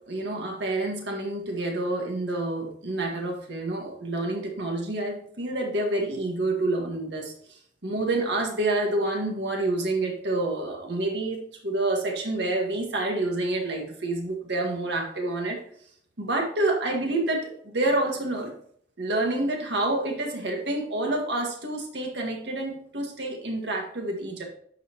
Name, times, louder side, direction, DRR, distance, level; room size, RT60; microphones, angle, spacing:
voice 1, 0.1-15.6 16.2-18.5 19.0-24.4, right 2 dB, 70° right, 1 dB, 1.9 m, -28 dB
11.0 x 5.5 x 3.1 m, 0.63 s
head